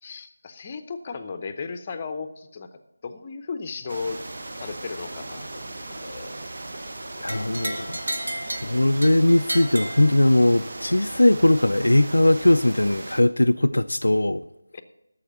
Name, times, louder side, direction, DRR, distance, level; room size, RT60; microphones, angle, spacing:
voice 1, 0.0-2.7 3.0-4.2 4.5-5.6 6.0-6.4 6.7-6.9 14.7-14.8, left 4 dB, 25° left, 0.7 m, -35 dB
sound 1, 3.9-13.2, right 2 dB, 50° right, 1.1 m, -37 dB
voice 2, 7.2-8.0 8.6-14.4, left 1 dB, 75° left, 0.4 m, -19 dB
sound 2, 7.3-10.7, right 1 dB, 75° right, 1.7 m, -33 dB
11.0 x 7.2 x 6.8 m
figure-of-eight pair, 165°, 0 cm